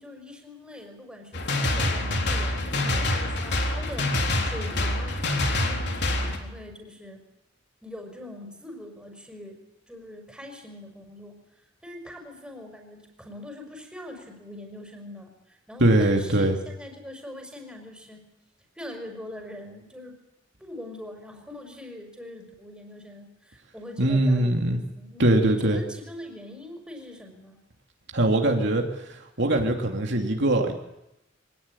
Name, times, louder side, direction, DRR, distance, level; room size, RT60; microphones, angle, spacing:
voice 1, 0.0-5.2 5.5-7.2 7.8-9.6 9.9-11.4 11.8-18.3 18.8-20.2 20.6-27.6 29.6-29.7, left 1 dB, 5° right, 3 dB, 5.4 m, -42 dB
sound 1, 1.3-6.4, left 1 dB, 60° left, 3.8 m, -26 dB
voice 2, 15.8-16.6 24.0-24.8 25.2-25.8 28.1-28.8 29.1-30.7, right 1 dB, 65° right, 2 dB, 2.9 m, -22 dB
24.0 x 18.0 x 10.0 m, 0.89 s
head